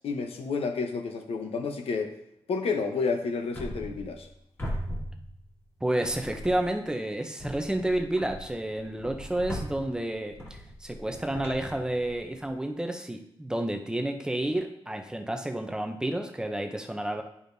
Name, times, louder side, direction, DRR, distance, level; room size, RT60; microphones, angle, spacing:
voice 1, 0.0-2.1 2.5-4.3, left 4 dB, 90° left, 5 dB, 0.9 m, -30 dB
sound 1, 3.5-4.3 4.6-5.7 6.0-6.9 7.4-12.5, equal, 25° left, 1.8 m, -39 dB
voice 2, 5.8-17.2, right 1 dB, 10° right, 4 dB, 0.6 m, -30 dB
11.0 x 5.0 x 2.7 m, 0.77 s
wide cardioid pair, 165°, 10 cm